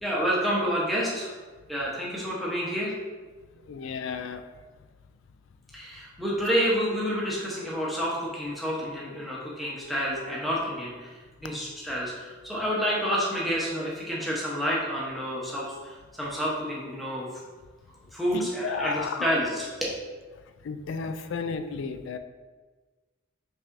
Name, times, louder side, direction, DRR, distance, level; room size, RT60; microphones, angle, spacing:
voice 1, 0.0-1.3 1.7-2.9 5.7-11.1 11.4-17.3 18.1-19.9, equal, ahead, -6 dB, 0.8 m, -29 dB
voice 2, 3.7-4.4 18.3-19.3 20.6-22.2, left 5 dB, 65° left, 9 dB, 0.3 m, -33 dB
5.4 x 3.4 x 2.5 m, 1.3 s
head